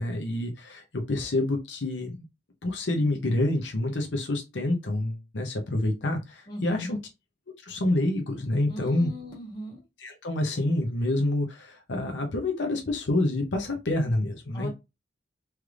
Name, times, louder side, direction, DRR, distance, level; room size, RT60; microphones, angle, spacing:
voice 1, 0.0-2.2 2.6-7.0 7.6-9.1 10.0-14.7, left 1 dB, 85° left, 0.8 m, -27 dB
voice 2, 6.5-6.9 8.7-9.8 14.5-14.7, left 1 dB, 25° left, 1.8 m, -38 dB
3.3 x 3.2 x 2.4 m
head